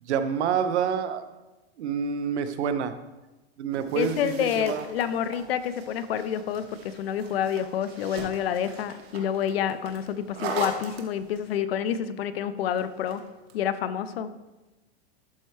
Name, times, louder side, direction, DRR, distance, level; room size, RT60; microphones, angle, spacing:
voice 1, 0.0-1.2 1.8-2.9 3.6-4.8, right 7 dB, 90° right, 10 dB, 0.8 m, -27 dB
sound 1, 3.7-11.6 12.8-13.6, right 4 dB, 65° right, 1.4 m, -40 dB
voice 2, 4.0-13.2 13.5-14.3, left 9 dB, 65° left, 13 dB, 0.6 m, -28 dB
12.0 x 4.4 x 3.2 m, 1.1 s
supercardioid pair, 180°, 33 cm